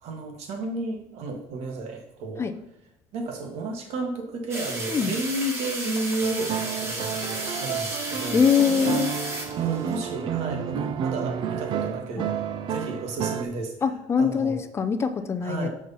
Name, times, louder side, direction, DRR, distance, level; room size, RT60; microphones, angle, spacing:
voice 1, 0.0-2.5 3.1-9.3 9.6-13.7 14.2-14.6 15.4-15.7, right 2 dB, 55° right, 3 dB, 1.5 m, -32 dB
sound 1, 4.5-10.0, right 1 dB, 20° right, 1.3 m, -33 dB
sound 2, 6.2-13.4, right 8 dB, 40° right, 0.5 m, -30 dB
voice 2, 8.3-9.1 13.8-15.7, left 6 dB, 20° left, 8 dB, 0.5 m, -23 dB
6.9 x 6.1 x 4.1 m, 0.83 s
cardioid pair, 170°, 13 cm